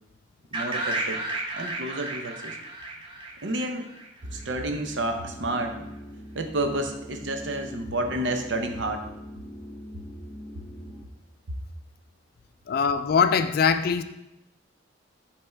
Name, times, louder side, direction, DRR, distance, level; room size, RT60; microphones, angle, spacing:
sound 1, 0.5-4.4, right 2 dB, 25° right, 0.8 m, -33 dB
voice 1, 0.5-1.2 1.5-2.6 3.4-3.9 4.3-5.8 6.3-9.1, right 1 dB, 70° right, 5 dB, 0.8 m, -30 dB
sound 2, 4.2-11.1, equal, 5° left, 1.0 m, -43 dB
voice 2, 12.7-14.0, left 6 dB, 55° left, 11 dB, 0.4 m, -22 dB
5.4 x 3.5 x 5.7 m, 0.88 s
head